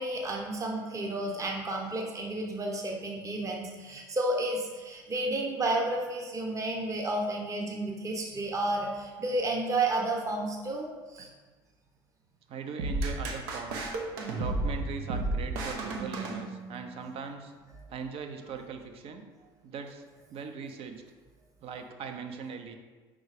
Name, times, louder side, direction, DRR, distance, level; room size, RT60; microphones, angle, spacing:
voice 1, 0.0-11.3, right 2 dB, 30° right, 0 dB, 0.9 m, -31 dB
voice 2, 12.5-13.9 14.3-17.5 17.9-19.3 19.6-20.0 20.3-21.0 21.6-22.8, right 5 dB, 55° right, 6 dB, 0.7 m, -40 dB
sound 1, 12.8-16.9, right 2 dB, 90° right, 0.9 m, -33 dB
4.9 x 3.9 x 4.9 m, 1.4 s
supercardioid pair, 95°, 11 cm